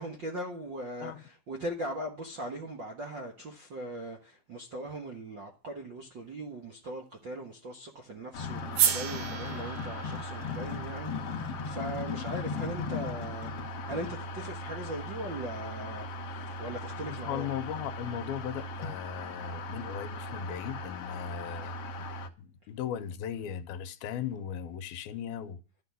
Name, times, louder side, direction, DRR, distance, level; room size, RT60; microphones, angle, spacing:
voice 1, 0.0-17.5 21.3-21.5, right 1 dB, 55° right, 1.3 m, -40 dB
sound 1, 8.3-22.3, left 2 dB, 60° left, 1.6 m, -38 dB
sound 2, 8.7-13.0, right 9 dB, 85° right, 3.4 m, -33 dB
voice 2, 17.1-22.1 22.4-25.6, left 9 dB, 80° left, 2.6 m, -37 dB
12.5 x 6.1 x 9.5 m
omnidirectional pair, 4.4 m